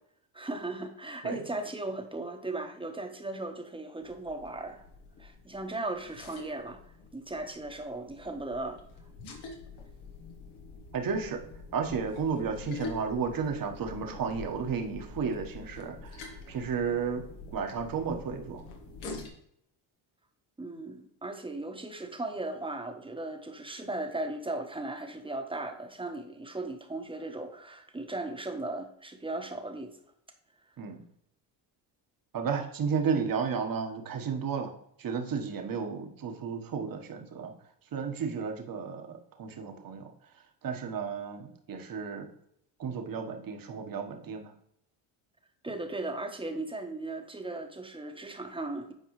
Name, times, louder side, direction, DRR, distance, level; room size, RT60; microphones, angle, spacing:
voice 1, 0.3-4.8 5.2-6.8 7.1-8.8 20.6-29.9 45.6-48.9, right 2 dB, 10° right, 5 dB, 1.2 m, -37 dB
sound 1, 4.0-19.3, left 4 dB, 75° left, 1.6 m, -46 dB
voice 2, 10.9-11.4 11.7-17.3 17.5-18.6 19.1-19.3 30.8-31.0 32.3-34.7 35.0-37.5 37.9-40.1 40.6-42.3 42.8-44.5, right 6 dB, 45° right, 4 dB, 1.3 m, -33 dB
9.2 x 4.6 x 3.2 m, 0.72 s
supercardioid pair, 80°, 47 cm